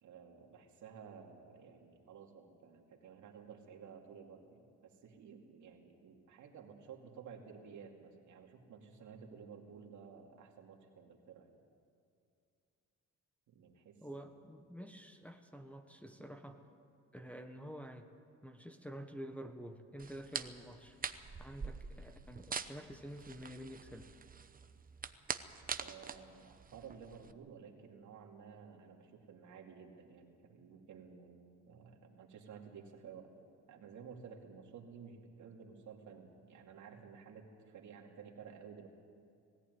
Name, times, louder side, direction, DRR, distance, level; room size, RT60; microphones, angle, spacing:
voice 1, 0.0-11.5 13.5-14.2 25.8-33.3 33.7-38.9, right 6 dB, 75° right, 1 dB, 2.6 m, -54 dB
voice 2, 14.0-16.6 17.1-18.1 18.4-21.0 21.4-24.1, equal, 5° left, 6 dB, 1.4 m, -49 dB
sound 1, 20.0-27.3, right 5 dB, 30° right, 0.9 m, -44 dB
20.0 x 14.5 x 9.5 m, 2.5 s
cardioid pair, 90°, 30 cm